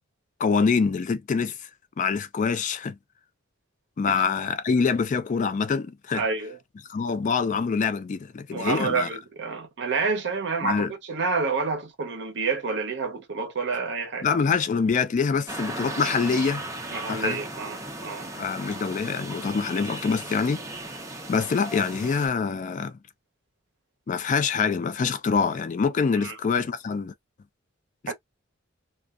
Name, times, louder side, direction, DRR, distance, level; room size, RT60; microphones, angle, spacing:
voice 1, 0.4-1.6 2.0-3.0 4.0-6.2 6.9-9.1 10.6-10.9 14.2-16.6 17.1-17.4 18.4-20.6 21.3-22.9 24.1-27.1 28.0-28.1, left 5 dB, 40° left, 0.3 m, -25 dB
voice 2, 6.1-6.6 8.5-14.3 16.9-18.3 26.1-26.3 28.1-28.2, right 4 dB, 60° right, 0.7 m, -29 dB
sound 1, 15.5-22.3, right 2 dB, 15° right, 0.5 m, -36 dB
2.5 x 2.2 x 2.3 m
head